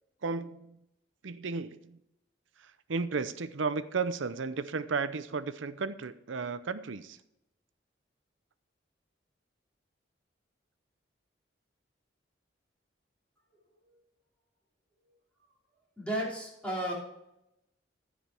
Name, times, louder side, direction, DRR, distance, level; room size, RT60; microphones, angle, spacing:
voice 1, 0.2-0.8 1.2-2.0 2.6-7.2, right 4 dB, 90° right, 0.6 m, -34 dB
voice 2, 16.0-16.9, right 1 dB, 5° left, 2.9 m, -33 dB
15.0 x 5.1 x 4.5 m
head